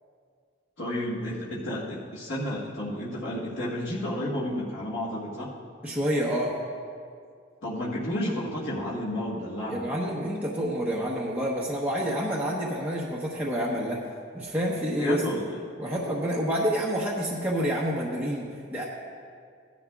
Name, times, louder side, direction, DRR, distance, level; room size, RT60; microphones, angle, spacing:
voice 1, 0.8-5.5 7.6-9.9 15.0-15.6, left 1 dB, 75° left, -8 dB, 1.6 m, -31 dB
voice 2, 5.8-6.5 9.7-14.0 14.3-15.2 15.8-18.8, equal, 5° right, -6 dB, 1.0 m, -28 dB
16.5 x 11.5 x 2.4 m, 2.2 s
head